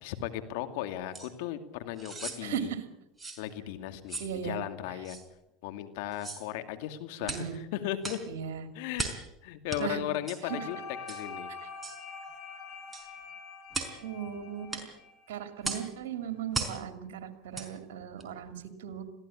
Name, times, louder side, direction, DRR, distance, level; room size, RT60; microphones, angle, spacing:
voice 1, 0.0-2.7 3.4-5.2 5.6-8.2 8.7-9.1 9.4-10.8 11.1-11.5, left 12 dB, 70° left, 9 dB, 2.4 m, -36 dB
sound 1, 1.1-1.3 2.0-2.4 3.2-3.4 4.1-4.3 5.1-5.2 6.1-6.5 7.2-7.5 8.0-8.3 9.0-9.3 9.7-9.8 10.3-10.4 11.1-11.3 11.8-12.0 12.9-13.1 13.7-14.0 14.7-14.9 15.6-15.9 16.5-16.8 17.5-17.7 18.2-18.3, right 3 dB, 15° right, 4.8 m, -37 dB
voice 2, 2.4-2.8 4.2-4.6 7.2-7.6 8.3-8.7 9.8-10.0 10.4-10.7 14.0-14.8 15.3-19.0, right 8 dB, 80° right, 8 dB, 2.6 m, -37 dB
sound 2, 10.5-15.6, left 5 dB, 55° left, 5.5 m, -44 dB
22.0 x 16.0 x 8.6 m, 0.88 s
hypercardioid pair, 95°, 0 cm